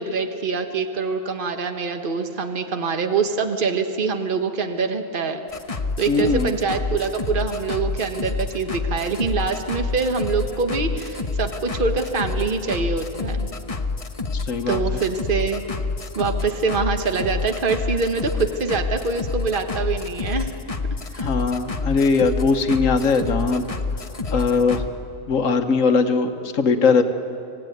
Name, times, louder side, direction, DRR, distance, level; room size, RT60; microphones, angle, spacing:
voice 1, 0.0-5.4 6.0-13.5 14.7-15.6 16.1-20.5 21.1-21.3, right 4 dB, 40° right, 6 dB, 1.5 m, -24 dB
sound 1, 5.5-24.9, left 4 dB, 30° left, 1.1 m, -28 dB
voice 2, 6.1-6.5 14.3-14.8 21.2-23.6 24.3-24.8 25.3-27.0, left 4 dB, 75° left, 7 dB, 1.5 m, -20 dB
26.5 x 17.5 x 9.2 m, 2.7 s
omnidirectional pair, 1.4 m